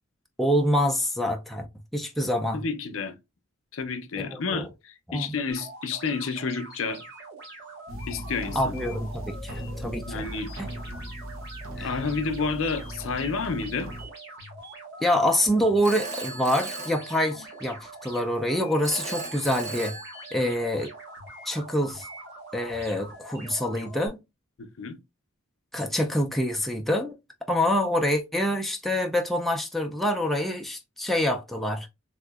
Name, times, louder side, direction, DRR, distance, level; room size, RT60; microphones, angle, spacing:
voice 1, 0.4-1.7 1.9-2.6 4.2-4.6 5.1-5.3 8.6-10.3 10.6-10.7 11.8-11.9 15.0-19.9 20.3-20.9 21.5-22.1 22.5-24.2 25.7-27.2 27.5-31.9, equal, ahead, 0.3 m, -26 dB
voice 2, 2.5-3.2 3.7-7.0 8.1-8.7 10.1-10.5 11.8-13.9 24.6-25.0, left 4 dB, 65° left, 0.5 m, -30 dB
sound 1, 5.5-24.1, right 2 dB, 55° right, 1.4 m, -44 dB
sound 2, 7.9-14.1, equal, 80° right, 0.7 m, -38 dB
Telephone, 15.8-17.8 18.8-20.8, right 3 dB, 35° right, 0.7 m, -37 dB
3.4 x 2.8 x 2.3 m
head